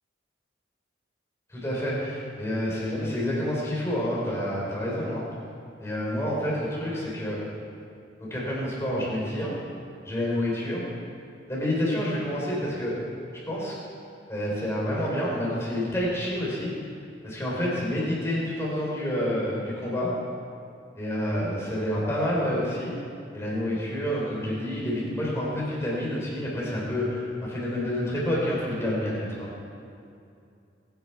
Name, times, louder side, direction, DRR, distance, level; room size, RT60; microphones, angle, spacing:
voice 1, 1.5-5.3 5.8-7.4 8.2-9.5 10.0-10.8 11.5-13.0 13.4-13.7 14.3-16.9 17.2-20.1 21.0-23.0 23.3-29.5, left 1 dB, 15° left, -5 dB, 4.4 m, -28 dB
24.0 x 10.5 x 4.6 m, 2.5 s
head